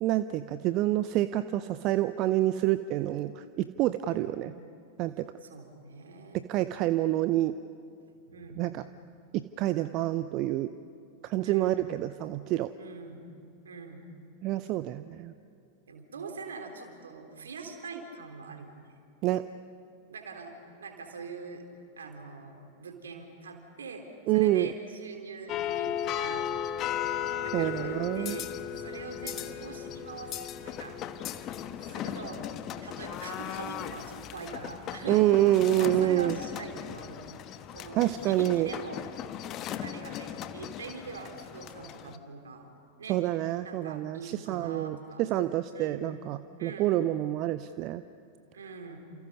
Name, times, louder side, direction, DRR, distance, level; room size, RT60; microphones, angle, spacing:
voice 1, 0.0-4.5 5.0-5.3 6.3-7.5 8.6-8.8 9.3-10.7 11.2-12.7 14.4-15.3 19.2-19.5 24.3-24.7 27.5-28.4 35.1-36.4 37.9-38.7 43.1-48.0, right 14 dB, 40° right, 13 dB, 0.6 m, -27 dB
voice 2, 5.4-6.5 8.3-8.7 11.4-11.8 12.8-13.2 13.7-14.1 15.9-19.0 20.1-20.5 20.8-21.6 22.0-24.1 24.3-26.5 27.4-28.5 28.8-30.4 30.6-31.0 31.7-32.5 32.8-37.2 37.7-39.0 39.7-42.7 43.0-43.2 43.6-45.2 45.7-46.1 46.6-47.2 48.5-49.0, right 4 dB, 70° right, 4 dB, 3.4 m, -43 dB
sound 1, 25.5-42.2, left 10 dB, 35° left, 1.1 m, -36 dB
29.5 x 27.5 x 5.5 m, 2.5 s
figure-of-eight pair, 90°, 0 cm